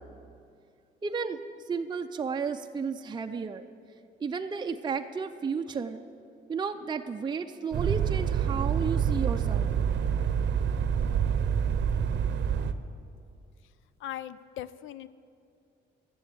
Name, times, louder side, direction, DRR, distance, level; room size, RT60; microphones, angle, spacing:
voice 1, 1.0-1.4 1.7-3.7 4.2-6.1 6.5-9.7, right 5 dB, 20° right, 6 dB, 0.5 m, -33 dB
sound 1, 7.7-12.7, right 8 dB, 60° right, 0.7 m, -27 dB
voice 2, 14.0-15.1, left 12 dB, 80° left, 16 dB, 0.5 m, -39 dB
14.0 x 7.0 x 8.0 m, 2.4 s
cardioid pair, 90°, 20 cm